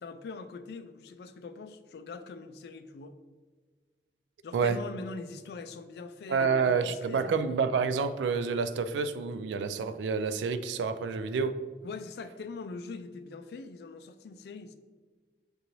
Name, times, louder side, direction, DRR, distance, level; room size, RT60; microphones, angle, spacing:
voice 1, 0.0-3.1 4.4-7.3 11.8-14.7, left 4 dB, 65° left, 9 dB, 0.3 m, -42 dB
voice 2, 6.3-11.5, right 5 dB, 90° right, 10 dB, 0.3 m, -28 dB
6.7 x 2.6 x 3.0 m, 1.4 s
head